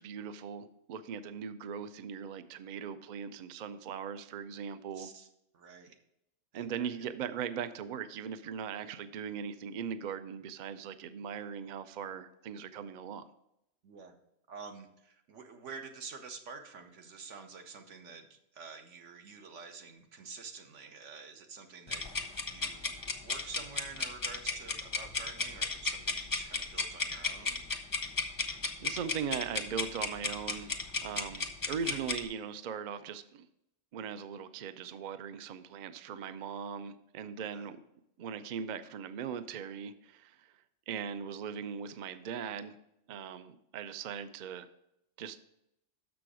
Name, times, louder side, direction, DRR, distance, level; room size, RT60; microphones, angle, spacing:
voice 1, 0.0-5.1 6.5-13.3 28.8-33.5 33.9-37.8 38.2-40.5 40.9-42.8 43.1-44.7 45.2-45.4, right 7 dB, 60° right, 11 dB, 0.5 m, -39 dB
voice 2, 4.9-5.3 5.5-6.0 6.5-6.9 13.8-14.1 14.5-22.1 22.5-27.7 37.5-37.7, right 5 dB, 80° right, 5 dB, 1.2 m, -48 dB
sound 1, 21.9-32.2, left 4 dB, 25° left, 0.5 m, -34 dB
6.7 x 6.1 x 4.8 m, 0.81 s
omnidirectional pair, 1.2 m